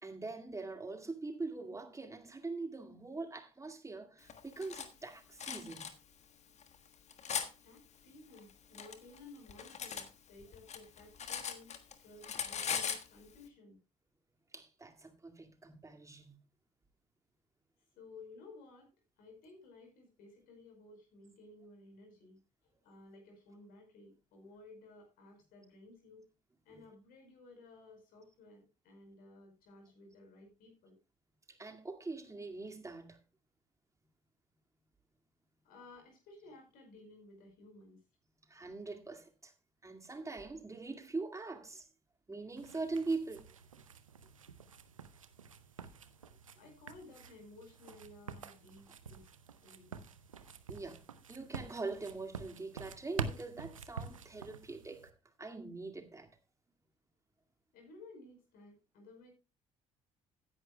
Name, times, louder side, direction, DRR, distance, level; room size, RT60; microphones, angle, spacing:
voice 1, 0.0-5.9 14.5-16.4 26.7-26.8 31.5-33.2 38.5-39.5 39.8-41.9 42.3-43.5 50.7-51.0 51.3-55.1 55.4-56.3, right 3 dB, 20° right, 2.1 m, -42 dB
Cutlery silverware, 4.3-4.9 5.4-5.9 6.6-7.5 8.4-10.1 10.4-11.9 12.2-13.1, left 7 dB, 45° left, 1.5 m, -39 dB
voice 2, 7.6-13.8 18.0-18.9 19.2-26.2 26.7-31.0 35.6-38.0 46.5-49.3 49.6-50.0 57.7-59.3, left 2 dB, 60° left, 5.2 m, -56 dB
sound 1, 42.6-55.1, right 5 dB, 90° right, 0.7 m, -47 dB
16.0 x 10.0 x 2.2 m
figure-of-eight pair, 55°, 17 cm